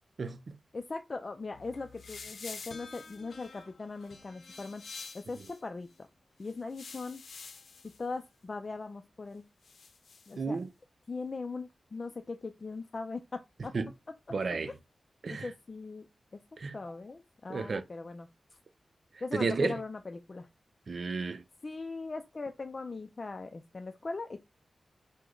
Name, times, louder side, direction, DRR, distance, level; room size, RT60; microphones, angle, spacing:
voice 1, 0.2-0.6 10.4-10.7 13.7-13.9 14.3-14.7 15.2-15.5 16.6-16.8 17.5-17.8 19.3-19.8 20.9-21.4, right 4 dB, 60° right, 0.5 m, -32 dB
voice 2, 0.7-4.8 5.1-5.9 6.4-7.2 8.0-9.4 10.3-10.6 11.1-13.2 13.6-13.7 15.4-16.1 16.7-18.3 19.2-20.5 21.6-24.4, left 3 dB, 45° left, 0.4 m, -40 dB
sound 1, 1.5-5.6 6.4-8.0 9.6-10.3, left 4 dB, 90° left, 0.6 m, -48 dB
4.9 x 2.1 x 3.8 m
wide cardioid pair, 90°, 0 cm